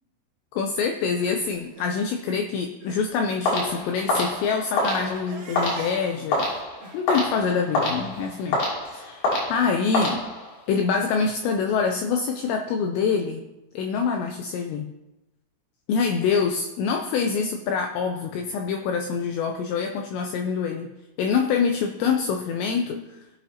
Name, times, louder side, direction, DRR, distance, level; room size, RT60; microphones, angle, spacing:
voice 1, 0.5-6.5 6.9-8.6 8.9-10.2 10.7-13.4 13.7-14.9 15.9-20.9 21.2-23.2, left 5 dB, 90° left, 4 dB, 2.5 m, -25 dB
Crying sobbing, 1.0-3.1 3.4-8.4, right 3 dB, 70° right, 1.7 m, -43 dB
sound 1, 3.5-10.7, left 2 dB, 60° left, 4.8 m, -27 dB
16.5 x 7.9 x 2.9 m, 0.98 s
omnidirectional pair, 5.9 m